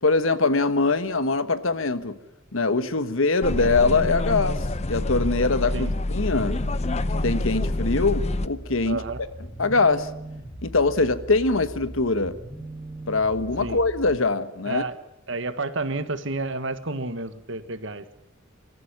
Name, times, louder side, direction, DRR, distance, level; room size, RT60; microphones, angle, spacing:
voice 1, 0.0-2.1 2.5-6.6 7.2-9.0 9.6-10.1 10.6-12.4 13.1-14.8, left 3 dB, 75° left, 12 dB, 1.3 m, -23 dB
sound 1, 3.4-8.5, left 2 dB, 35° left, 0.7 m, -26 dB
sound 2, 6.2-14.2, right 1 dB, 10° left, 2.5 m, -40 dB
voice 2, 8.8-9.2 13.6-13.8 14.7-14.9 15.3-18.1, right 3 dB, 65° right, 11 dB, 1.6 m, -30 dB
25.5 x 14.0 x 9.8 m, 0.93 s
head